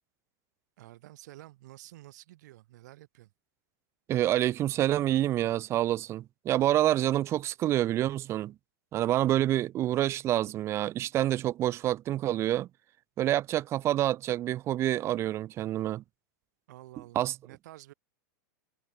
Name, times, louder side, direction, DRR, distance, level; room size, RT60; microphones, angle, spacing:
voice 1, 0.8-3.3 16.7-17.9, right 16 dB, 60° right, 2.6 m, -50 dB
voice 2, 4.1-8.5 8.9-12.7 13.2-16.0 17.1-17.3, right 13 dB, 25° right, 0.9 m, -27 dB
supercardioid pair, 155°, 10 cm